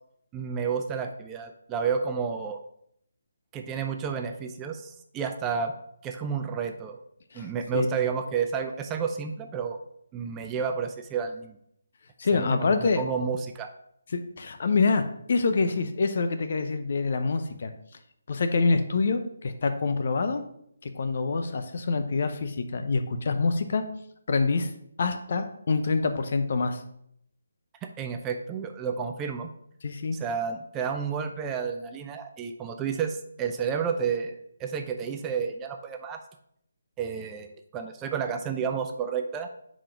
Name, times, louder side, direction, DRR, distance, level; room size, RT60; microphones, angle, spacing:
voice 1, 0.3-2.6 3.5-5.7 6.0-7.0 7.3-9.8 10.1-11.6 12.3-13.7 27.8-29.5 30.1-36.2 37.0-39.5, right 6 dB, 15° right, 6 dB, 0.4 m, -31 dB
voice 2, 7.3-7.9 12.2-13.0 14.1-17.7 18.3-20.4 20.8-23.8 24.3-24.7 25.0-26.8 29.8-30.2, left 4 dB, 55° left, 8 dB, 0.7 m, -26 dB
5.0 x 3.7 x 5.6 m, 0.72 s
figure-of-eight pair, 155°, 0 cm